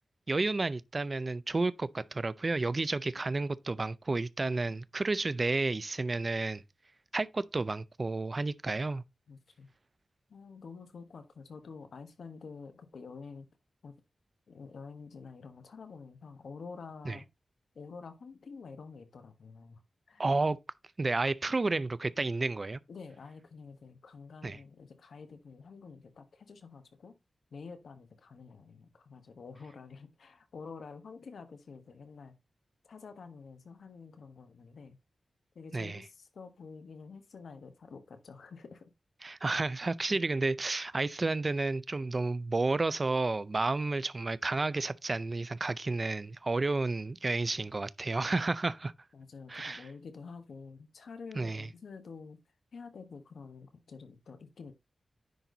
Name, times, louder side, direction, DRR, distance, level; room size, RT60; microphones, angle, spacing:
voice 1, 0.3-6.6 7.1-9.0 17.1-17.2 20.2-20.6 21.0-22.8 24.4-24.6 35.7-36.0 39.2-48.9 49.5-49.8 51.4-51.7, right 3 dB, 30° right, 0.4 m, -31 dB
voice 2, 9.3-9.7 10.3-13.5 13.8-14.0 14.5-17.3 17.7-19.8 20.1-20.2 22.9-27.1 27.5-32.3 32.8-35.0 35.5-38.9 40.1-40.2 49.1-52.4 52.7-54.7, left 5 dB, 80° left, 1.3 m, -48 dB
10.0 x 4.3 x 3.9 m
wide cardioid pair, 170°, 0 cm